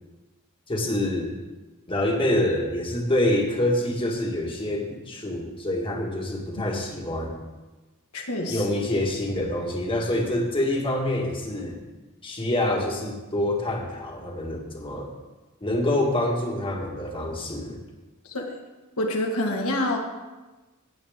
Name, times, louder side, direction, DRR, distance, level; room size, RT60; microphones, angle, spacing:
voice 1, 0.7-1.3 1.9-7.4 8.5-11.8 12.2-15.1 15.6-17.8, left 1 dB, 25° left, 0 dB, 1.8 m, -26 dB
voice 2, 8.1-8.8 18.3-18.6 19.0-20.0, left 1 dB, 70° left, 1 dB, 1.8 m, -27 dB
16.5 x 8.8 x 3.7 m, 1.2 s
head